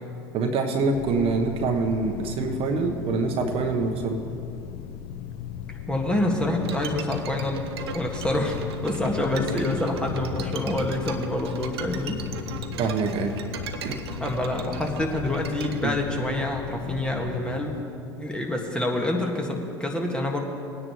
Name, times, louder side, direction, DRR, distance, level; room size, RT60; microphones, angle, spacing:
voice 1, 0.3-4.2 12.8-13.3 13.8-14.0 15.8-15.9, right 4 dB, 45° right, 4 dB, 1.1 m, -25 dB
sound 1, 0.9-17.8, left 9 dB, 65° left, 0.7 m, -36 dB
voice 2, 5.9-12.2 14.2-17.8 18.2-20.4, left 1 dB, 5° left, 1 dB, 1.7 m, -27 dB
Bowed string instrument, 6.6-15.8, right 7 dB, 80° right, 0.8 m, -39 dB
19.0 x 9.7 x 3.1 m, 2.6 s
hypercardioid pair, 80°, 13 cm